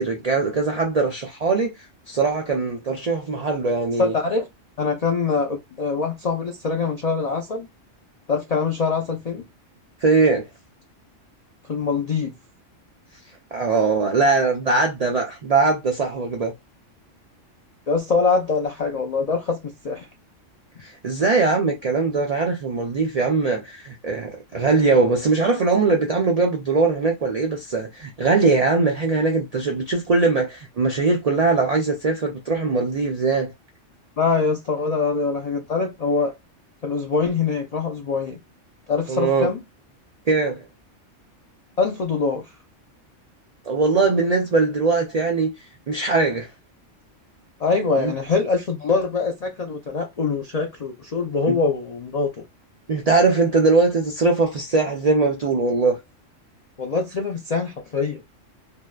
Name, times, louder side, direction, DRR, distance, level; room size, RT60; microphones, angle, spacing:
voice 1, 0.0-1.7 2.1-4.1 10.0-10.5 13.5-16.5 20.8-33.5 39.1-39.5 40.3-40.6 43.7-45.5 45.9-46.5 48.0-48.1 51.5-51.6 52.9-56.0, right 3 dB, 70° right, 0.3 m, -21 dB
voice 2, 4.0-4.5 4.8-7.7 8.3-9.4 11.7-12.3 17.9-20.1 34.2-36.3 36.8-38.4 38.9-39.6 41.8-42.4 47.6-52.4 56.8-58.2, left 4 dB, 70° left, 0.3 m, -23 dB
2.7 x 2.1 x 2.2 m
omnidirectional pair, 1.3 m